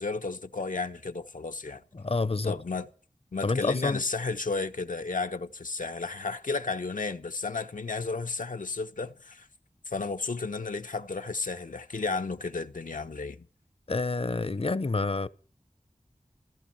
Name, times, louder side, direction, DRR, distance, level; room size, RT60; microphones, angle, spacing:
voice 1, 0.0-1.8 2.4-2.9 3.3-9.5 9.9-13.5, left 3 dB, 85° left, 1.0 m, -33 dB
voice 2, 1.9-2.6 3.4-4.0 13.9-15.3, left 3 dB, 45° left, 0.8 m, -28 dB
15.0 x 14.0 x 5.8 m
wide cardioid pair, 45°, 13 cm